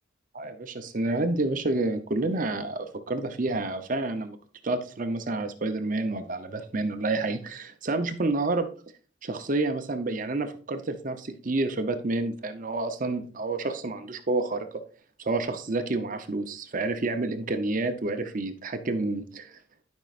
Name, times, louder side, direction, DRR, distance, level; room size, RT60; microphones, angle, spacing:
voice 1, 0.3-4.4 4.6-8.7 9.2-14.8 15.2-19.6, right 2 dB, 40° right, 8 dB, 0.7 m, -29 dB
12.5 x 5.3 x 2.5 m, 0.41 s
head